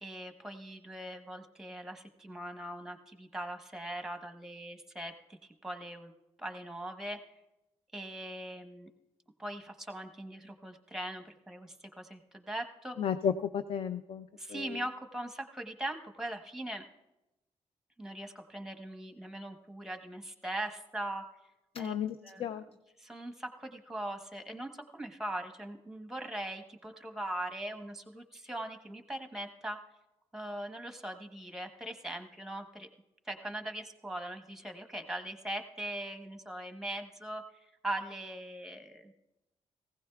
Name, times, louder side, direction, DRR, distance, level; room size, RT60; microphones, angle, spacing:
voice 1, 0.0-6.1 6.4-7.2 7.9-8.9 9.4-13.0 14.3-16.8 18.0-21.2 21.8-21.9 22.2-22.6 23.0-29.8 30.3-32.9 33.2-39.1, right 1 dB, 5° right, 6 dB, 1.0 m, -40 dB
voice 2, 13.0-14.8 21.7-22.6, left 8 dB, 55° left, 11 dB, 0.4 m, -34 dB
18.5 x 16.0 x 2.3 m, 0.94 s
cardioid pair, 130°, 11 cm